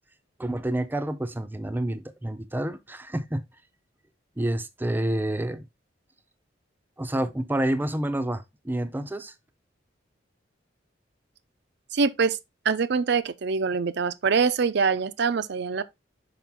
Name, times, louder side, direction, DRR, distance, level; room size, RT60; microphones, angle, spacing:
voice 1, 0.4-3.4 4.4-5.7 7.0-9.3, right 1 dB, 10° right, 0.5 m, -28 dB
voice 2, 11.9-12.4 12.6-15.8, right 5 dB, 65° right, 0.5 m, -24 dB
5.9 x 5.1 x 3.5 m
head